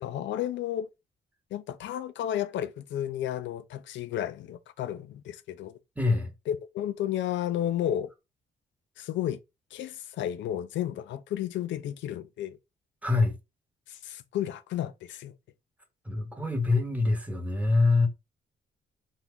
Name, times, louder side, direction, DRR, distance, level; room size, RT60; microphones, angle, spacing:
voice 1, 0.0-0.9 1.5-5.8 6.5-8.1 9.0-9.4 9.7-12.6 13.9-15.3, left 11 dB, 70° left, 0.4 m, -32 dB
voice 2, 6.0-6.3 13.0-13.3 16.0-18.1, left 3 dB, 5° right, 0.9 m, -24 dB
2.8 x 2.2 x 3.4 m
cardioid pair, 90°, 20 cm